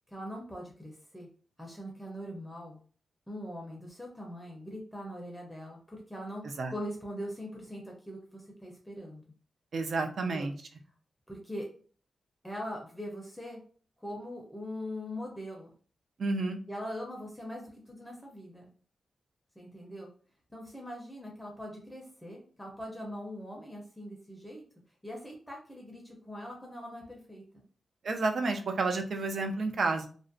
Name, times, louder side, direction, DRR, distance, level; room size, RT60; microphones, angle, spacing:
voice 1, 0.1-1.3 1.6-2.8 3.3-9.2 10.0-10.5 11.3-11.7 12.4-13.6 14.0-15.7 16.7-18.7 19.6-20.1 20.5-24.6 25.0-27.6, equal, 5° left, -1 dB, 0.5 m, -42 dB
voice 2, 9.7-10.5 16.2-16.6 28.0-30.1, right 3 dB, 65° right, 4 dB, 0.4 m, -30 dB
2.4 x 2.0 x 2.5 m, 0.42 s
cardioid pair, 95°, 0 cm